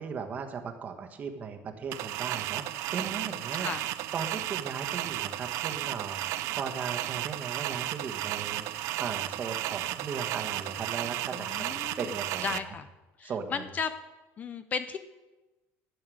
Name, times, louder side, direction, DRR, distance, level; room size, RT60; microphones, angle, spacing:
voice 1, 0.0-3.7 4.1-8.7 9.0-12.7 13.2-13.6, right 6 dB, 30° right, 5 dB, 1.2 m, -37 dB
sound 1, 1.9-12.6, right 15 dB, 65° right, 0.5 m, -34 dB
voice 2, 3.1-3.8 11.3-12.2 12.4-12.9 13.2-13.9 14.4-15.0, left 6 dB, 30° left, 11 dB, 0.5 m, -35 dB
12.5 x 8.5 x 6.3 m, 1.1 s
cardioid pair, 160°, 5 cm